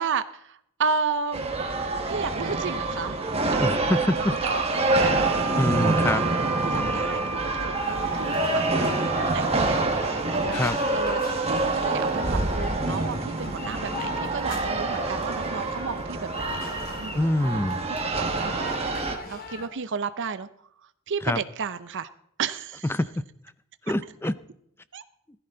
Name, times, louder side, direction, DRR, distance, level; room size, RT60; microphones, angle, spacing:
voice 1, 0.0-1.5 2.1-3.2 3.5-3.8 4.2-5.3 5.8-10.5 10.9-11.2 11.5-16.6 17.0-17.3 18.2-18.8 19.3-20.5 21.1-22.1 22.4-22.9 24.9-25.0, right 5 dB, 55° right, 0.7 m, -32 dB
sound 1, 1.3-19.2, right 2 dB, 30° right, 1.8 m, -26 dB
voice 2, 3.6-4.3 5.6-6.2 10.5-10.8 17.1-17.8 21.2-21.4 22.8-23.1 23.9-24.4, left 1 dB, 10° left, 0.5 m, -25 dB
Wind instrument woodwind instrument, 5.2-9.5, right 3 dB, 90° right, 0.9 m, -34 dB
sound 2, 7.7-19.7, left 2 dB, 45° left, 2.4 m, -40 dB
17.0 x 15.0 x 3.9 m
head